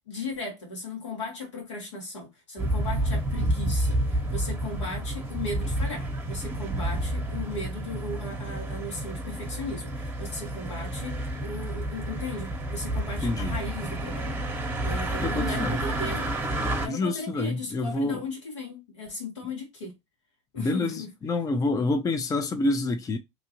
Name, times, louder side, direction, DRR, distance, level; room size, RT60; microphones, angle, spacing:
voice 1, 0.1-14.4 14.8-16.2 16.8-19.9 20.5-21.1, left 2 dB, 80° left, 1.6 m, -37 dB
sound 1, 2.6-16.9, right 1 dB, 15° right, 1.0 m, -30 dB
voice 2, 13.2-13.5 15.2-15.8 16.9-18.2 20.6-23.2, left 2 dB, 25° left, 0.5 m, -27 dB
2.9 x 2.4 x 2.9 m
hypercardioid pair, 75°, 15 cm